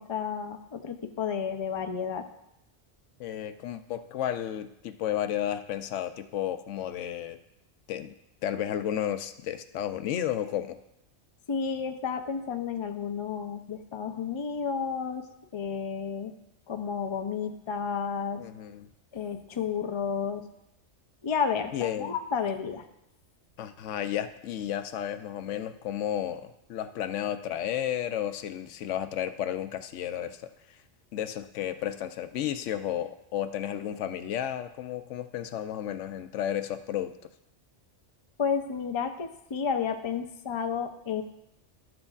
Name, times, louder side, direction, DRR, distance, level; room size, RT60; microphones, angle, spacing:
voice 1, 0.0-2.3 11.5-15.2 15.5-16.3 16.7-18.4 19.1-20.5 21.2-22.8 38.4-41.2, left 6 dB, 35° left, 6 dB, 0.5 m, -31 dB
voice 2, 3.2-7.4 7.9-8.1 8.4-10.8 18.4-18.9 21.7-22.2 23.6-30.8 31.1-37.1, left 11 dB, 80° left, 10 dB, 0.9 m, -32 dB
12.5 x 7.6 x 2.4 m, 0.81 s
omnidirectional pair, 1.2 m